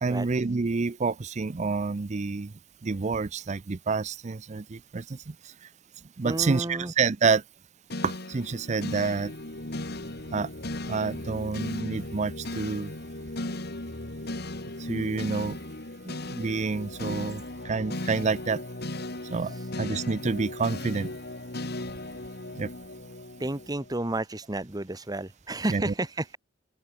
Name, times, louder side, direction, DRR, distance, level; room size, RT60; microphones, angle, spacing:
voice 1, 0.0-2.5 2.8-5.3 6.2-7.4 8.0-9.3 10.3-10.5 10.8-12.9 14.9-15.6 16.1-18.6 19.3-21.1 22.5-22.7 25.7-25.9, right 4 dB, 40° right, 0.5 m, -28 dB
voice 2, 6.2-6.9 19.4-19.7 23.4-26.4, right 1 dB, 20° right, 1.2 m, -32 dB
sound 1, 7.9-24.2, left 1 dB, 60° left, 2.5 m, -37 dB
open air
head